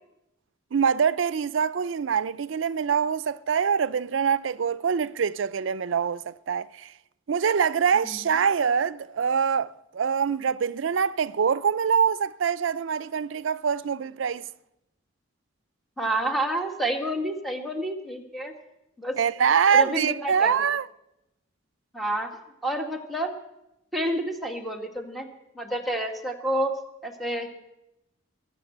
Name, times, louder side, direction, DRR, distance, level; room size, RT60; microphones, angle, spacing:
voice 1, 0.7-6.9 7.3-14.5 19.2-20.9, right 7 dB, 85° right, 0.5 m, -24 dB
voice 2, 16.0-18.5 19.0-19.2 19.7-20.6 21.9-22.4 22.6-23.3 23.9-25.3 25.6-26.8 27.0-27.5, right 1 dB, ahead, 1.7 m, -29 dB
21.5 x 7.4 x 7.9 m
head